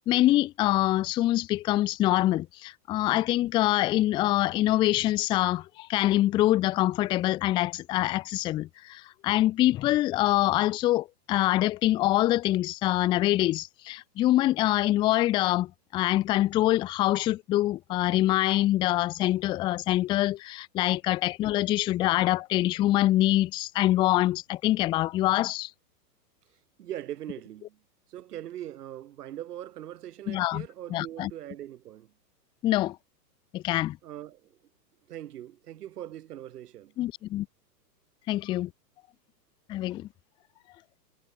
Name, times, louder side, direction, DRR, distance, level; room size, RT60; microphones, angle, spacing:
voice 1, 0.1-25.7 30.3-30.6 30.9-31.3 32.6-33.0 33.5-34.0 37.0-37.5 38.3-38.7 39.7-40.1, left 15 dB, 10° left, 0.5 m, -25 dB
voice 2, 26.8-27.8 28.1-32.1 34.0-34.6 35.1-37.0, right 12 dB, 65° right, 4.0 m, -41 dB
hypercardioid pair, 145°, 49 cm